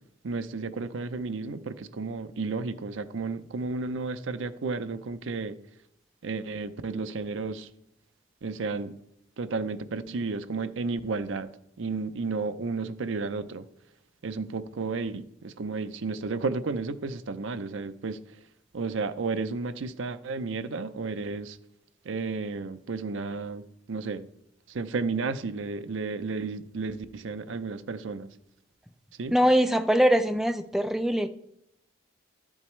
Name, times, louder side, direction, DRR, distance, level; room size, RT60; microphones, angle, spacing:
voice 1, 0.2-5.6 6.2-7.7 8.4-8.9 9.4-11.5 11.8-13.7 14.2-18.2 18.7-21.6 22.0-24.2 24.7-28.3 29.2-29.3, right 4 dB, 75° right, 0.5 m, -32 dB
voice 2, 29.3-31.3, equal, ahead, 0.4 m, -22 dB
12.0 x 8.7 x 3.2 m
head